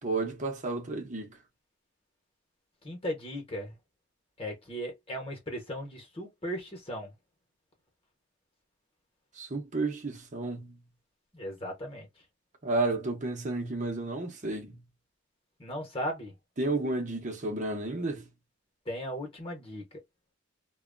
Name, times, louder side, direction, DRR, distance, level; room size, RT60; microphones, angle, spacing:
voice 1, 0.0-1.4 9.4-10.8 12.6-14.8 16.6-18.3, right 2 dB, 40° right, 0.9 m, -32 dB
voice 2, 2.8-3.7 4.4-7.1 11.3-12.1 15.6-16.3 18.9-19.8, equal, 30° left, 1.1 m, -37 dB
2.8 x 2.3 x 2.5 m
head